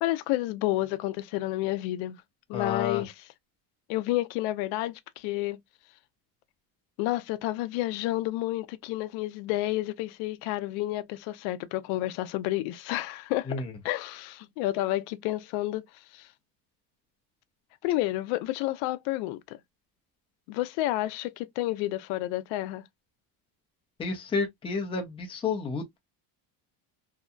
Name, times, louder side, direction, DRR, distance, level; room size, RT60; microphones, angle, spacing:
voice 1, 0.0-2.2 2.5-3.3 3.9-5.6 7.0-16.3 17.8-19.6 20.5-22.8, left 16 dB, 90° left, 0.5 m, -30 dB
voice 2, 2.5-3.0 13.5-13.6 24.0-26.0, left 5 dB, 15° left, 0.4 m, -30 dB
2.7 x 2.2 x 2.3 m
cardioid pair, 170°, 43 cm